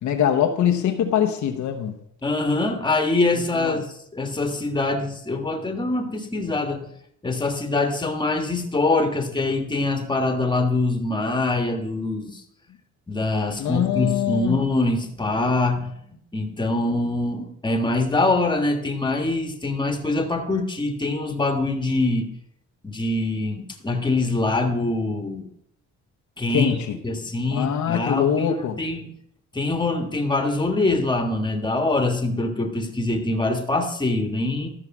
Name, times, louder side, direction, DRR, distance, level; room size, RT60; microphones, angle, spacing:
voice 1, 0.0-2.0 3.5-3.8 13.6-14.6 26.5-27.0 27.5-28.8, left 9 dB, 70° left, 1.0 m, -23 dB
voice 2, 2.2-6.9 7.2-12.4 13.1-22.3 22.8-25.5 26.4-26.7 27.0-29.1 29.5-34.7, left 2 dB, 15° left, 1.4 m, -24 dB
12.5 x 4.9 x 5.9 m
cardioid pair, 90°, 30 cm